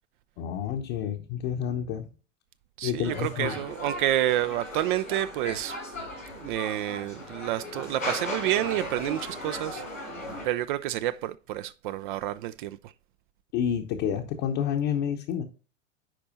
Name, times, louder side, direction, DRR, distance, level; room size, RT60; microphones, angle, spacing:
voice 1, 0.4-2.1 2.8-3.5 13.5-15.4, left 9 dB, 40° left, 0.9 m, -29 dB
voice 2, 2.8-5.8 6.3-9.8 10.4-12.9, right 13 dB, 45° right, 0.4 m, -29 dB
sound 1, 3.0-10.5, left 1 dB, 90° left, 3.8 m, -37 dB
10.5 x 4.3 x 2.6 m
figure-of-eight pair, 90°, 38 cm